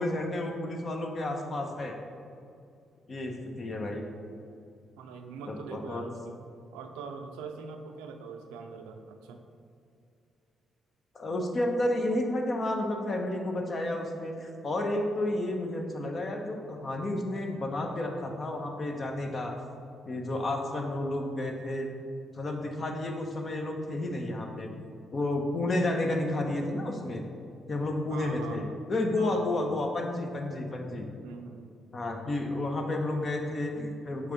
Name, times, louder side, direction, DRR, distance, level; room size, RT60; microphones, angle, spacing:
voice 1, 0.0-2.0 3.1-4.1 5.5-6.0 11.1-19.5 20.0-21.9 22.3-24.7 25.1-27.2 27.7-31.1 31.9-34.3, left 1 dB, 45° left, 2 dB, 0.9 m, -31 dB
voice 2, 5.0-6.4 6.7-9.4 28.1-28.8 29.1-29.9 31.2-31.7, right 5 dB, 85° right, 5 dB, 0.4 m, -43 dB
6.0 x 3.4 x 5.2 m, 2.5 s
hypercardioid pair, 45°, 0 cm